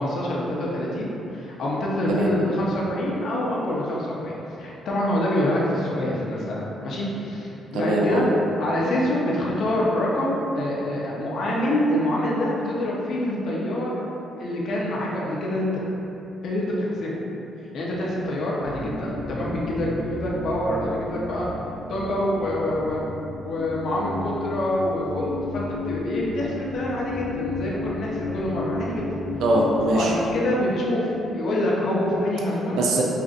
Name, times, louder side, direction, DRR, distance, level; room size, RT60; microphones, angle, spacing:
voice 1, 0.0-8.3 8.6-14.0 14.4-15.7 16.4-17.2 17.7-21.5 21.9-23.0 23.4-29.1 29.9-32.8, left 1 dB, 70° left, -4 dB, 0.8 m, -26 dB
voice 2, 7.7-8.3 29.4-30.1 32.7-33.0, right 2 dB, 80° right, -2 dB, 0.4 m, -22 dB
sound 1, 18.6-30.2, left 2 dB, 50° left, 1.1 m, -33 dB
5.5 x 2.5 x 2.5 m, 3.0 s
cardioid pair, 90°, 0 cm